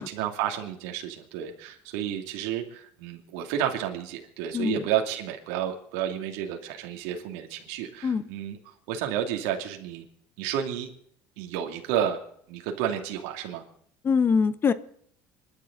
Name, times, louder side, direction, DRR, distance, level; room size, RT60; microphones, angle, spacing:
voice 1, 0.0-8.6 8.9-10.0 10.4-10.9 11.4-12.2 12.5-13.6, right 10 dB, 80° right, 2 dB, 2.6 m, -31 dB
voice 2, 4.5-4.8 8.0-8.2 14.0-14.7, left 5 dB, 35° left, 13 dB, 1.2 m, -23 dB
26.5 x 11.5 x 4.0 m, 0.65 s
supercardioid pair, 95°, 7 cm